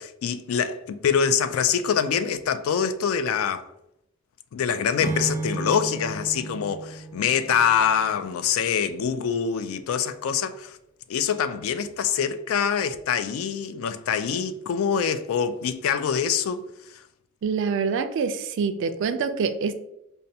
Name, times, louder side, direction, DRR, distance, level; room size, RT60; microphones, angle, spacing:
voice 1, 0.0-3.7 4.5-10.8 11.1-16.6, left 7 dB, 80° left, 0.3 m, -25 dB
Acoustic guitar / Strum, 5.0-8.4, right 3 dB, 10° right, 0.6 m, -34 dB
voice 2, 17.4-19.7, right 5 dB, 60° right, 0.3 m, -25 dB
5.2 x 2.2 x 2.7 m
head